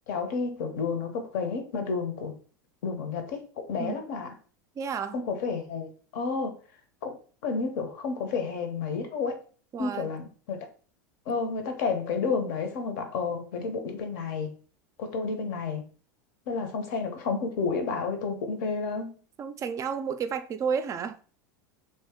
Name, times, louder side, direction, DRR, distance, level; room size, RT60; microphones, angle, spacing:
voice 1, 0.1-2.3 2.8-4.3 5.1-6.6 7.0-7.2 7.4-9.4 9.8-10.6 11.3-14.5 15.0-15.8 16.5-19.2, left 4 dB, 60° left, 0.8 m, -31 dB
voice 2, 4.8-5.2 9.7-10.1 19.4-21.2, right 6 dB, 30° right, 0.4 m, -31 dB
2.8 x 2.7 x 3.6 m
hypercardioid pair, 85°, 11 cm